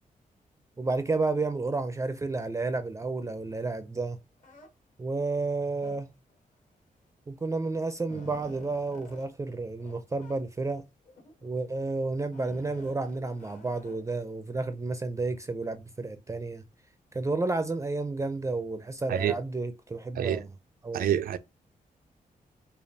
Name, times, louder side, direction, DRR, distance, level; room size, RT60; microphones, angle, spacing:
voice 1, 0.8-4.2 5.0-6.1 7.3-10.8 11.4-16.6 17.1-20.5 20.8-21.1, right 3 dB, 20° right, 0.4 m, -31 dB
sound 1, 4.4-4.7 5.8-6.3 7.3-7.4 7.7-9.3 9.8-10.0 10.2-10.3 11.0-11.5 12.3-14.2, left 2 dB, 60° left, 1.4 m, -49 dB
voice 2, 20.9-21.4, right 10 dB, 80° right, 0.4 m, -27 dB
5.1 x 2.3 x 2.6 m
wide cardioid pair, 135°, 15 cm